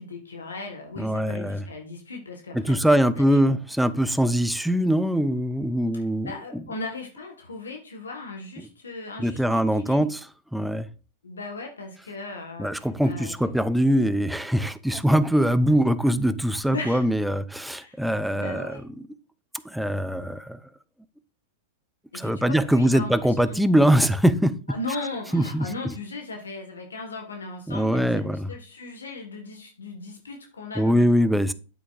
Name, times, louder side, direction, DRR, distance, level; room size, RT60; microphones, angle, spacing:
voice 1, 0.0-2.8 3.2-3.6 5.9-10.1 11.2-13.3 16.7-17.1 17.8-18.0 18.3-18.8 22.1-23.6 24.7-31.1, left 3 dB, 90° left, 1.6 m, -37 dB
voice 2, 1.0-1.6 2.5-6.3 9.2-10.2 10.5-10.9 12.6-18.8 19.6-20.6 22.1-24.6 25.3-25.7 27.7-28.5 30.8-31.5, equal, ahead, 0.6 m, -22 dB
9.2 x 8.3 x 2.5 m
hypercardioid pair, 105°, 0 cm